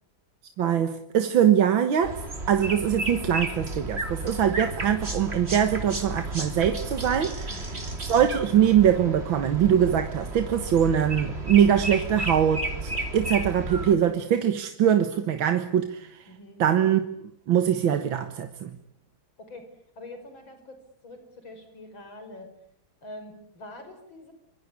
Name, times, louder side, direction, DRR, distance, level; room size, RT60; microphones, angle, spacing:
voice 1, 0.6-2.2 2.5-7.8 8.1-16.2 16.6-17.0 17.5-18.7, right 9 dB, 85° right, 2.1 m, -23 dB
sound 1, 2.0-13.9, right 2 dB, 30° right, 3.4 m, -33 dB
voice 2, 7.5-7.9 16.2-16.6 19.4-22.5 23.0-24.3, left 1 dB, 90° left, 6.0 m, -45 dB
25.5 x 22.5 x 9.7 m
omnidirectional pair, 2.1 m